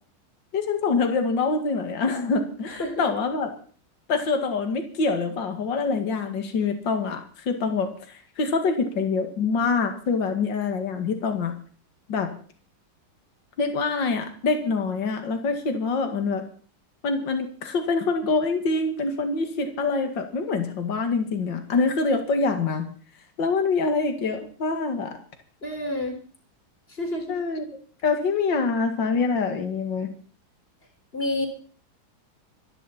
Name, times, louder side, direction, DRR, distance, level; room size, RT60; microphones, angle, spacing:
voice 1, 0.5-3.5 4.1-11.5 12.1-12.3 13.6-16.4 17.0-22.9 23.4-25.2 27.3-27.7 28.0-30.1, left 4 dB, 60° left, 6 dB, 2.7 m, -25 dB
voice 2, 25.6-26.2 27.0-27.4 31.1-31.5, left 1 dB, 30° left, 4 dB, 3.9 m, -28 dB
26.5 x 11.0 x 4.4 m, 0.42 s
omnidirectional pair, 2.2 m